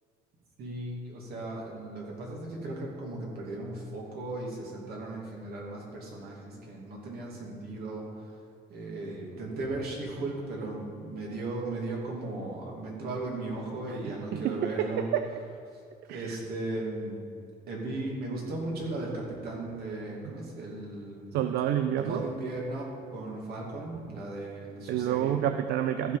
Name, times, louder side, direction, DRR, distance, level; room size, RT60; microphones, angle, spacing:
voice 1, 0.6-8.4 8.7-15.1 15.7-15.8 16.1-17.3 17.7-21.4 22.0-25.4, right 2 dB, 65° right, -2 dB, 2.7 m, -36 dB
voice 2, 14.3-15.2 16.1-16.4 20.2-20.3 21.3-22.3 24.9-26.2, right 10 dB, 80° right, 9 dB, 0.5 m, -29 dB
14.5 x 5.4 x 5.2 m, 2.3 s
cardioid pair, 110°, 17 cm